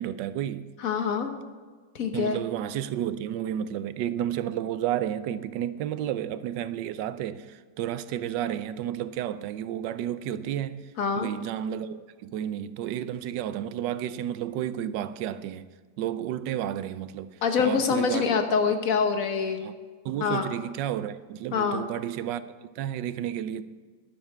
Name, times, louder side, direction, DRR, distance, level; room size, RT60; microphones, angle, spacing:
voice 1, 0.0-0.7 2.1-10.8 11.2-15.7 16.0-18.3 18.7-18.8 19.6-19.7 20.0-23.6, right 10 dB, 75° right, 1.1 m, -31 dB
voice 2, 0.8-1.3 1.9-2.4 11.0-11.3 17.4-19.7 20.2-20.5 21.5-21.8, left 6 dB, 50° left, 1.3 m, -25 dB
11.5 x 7.0 x 7.3 m
omnidirectional pair, 2.1 m